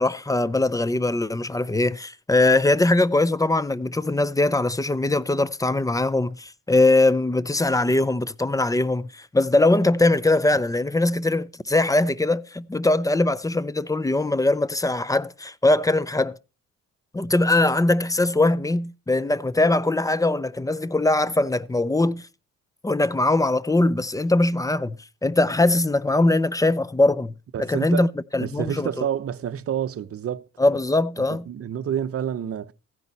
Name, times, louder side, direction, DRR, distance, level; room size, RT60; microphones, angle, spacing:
voice 1, 0.0-16.4 17.1-22.2 22.8-27.3 27.6-29.0 30.6-31.4, left 2 dB, 10° left, 0.5 m, -21 dB
voice 2, 27.5-28.1 28.4-30.4 31.5-32.7, right 9 dB, 50° right, 0.9 m, -28 dB
15.0 x 10.0 x 4.1 m
cardioid pair, 90°, 30 cm